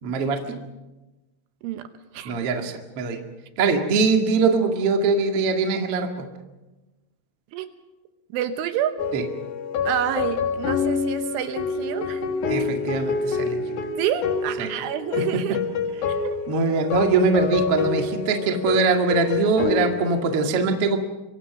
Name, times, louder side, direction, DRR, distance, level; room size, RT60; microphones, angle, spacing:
voice 1, 0.0-0.5 2.2-3.2 3.6-6.3 9.1-9.2 12.5-13.6 14.6-14.7 15.3-15.6 16.5-21.0, right 4 dB, 50° right, 4 dB, 1.8 m, -22 dB
voice 2, 8.3-9.0 9.8-12.2 14.0-15.6 16.2-16.4, right 10 dB, 75° right, 9 dB, 3.3 m, -28 dB
sound 1, 9.0-20.2, left 5 dB, 65° left, 2.0 m, -27 dB
25.5 x 24.5 x 6.1 m, 1.1 s
omnidirectional pair, 5.9 m